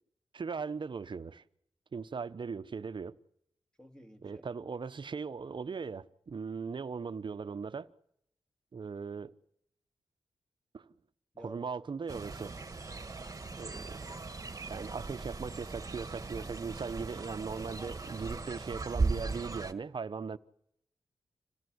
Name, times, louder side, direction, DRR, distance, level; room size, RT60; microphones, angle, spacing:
voice 1, 0.3-1.4 1.9-3.2 4.2-7.9 8.7-9.3 10.7-10.9 11.4-12.5 13.6-14.1 14.7-20.4, right 5 dB, 50° right, 0.9 m, -39 dB
voice 2, 3.8-4.4 11.3-11.7 16.4-16.6 17.1-17.2 17.6-18.5, equal, 10° left, 2.7 m, -53 dB
Fowl, 12.1-19.7, right 3 dB, 35° right, 1.6 m, -38 dB
26.5 x 17.0 x 8.0 m
cardioid pair, 65°, 10 cm